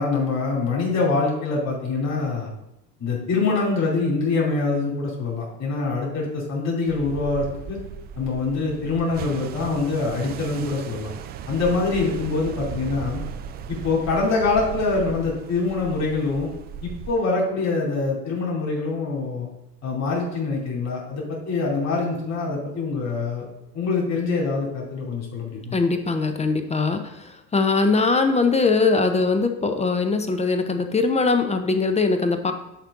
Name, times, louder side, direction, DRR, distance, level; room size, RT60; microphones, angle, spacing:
voice 1, 0.0-2.5 3.0-7.8 8.2-11.1 11.5-13.2 13.7-16.5 16.8-19.5 19.8-23.5 23.7-25.8, left 3 dB, 35° left, -4 dB, 3.0 m, -24 dB
sound 1, 6.9-17.1, right 7 dB, 25° right, 0.3 m, -36 dB
voice 2, 25.7-32.5, left 4 dB, 15° left, 7 dB, 0.7 m, -21 dB
10.0 x 4.4 x 3.7 m, 0.87 s
figure-of-eight pair, 75°, 47 cm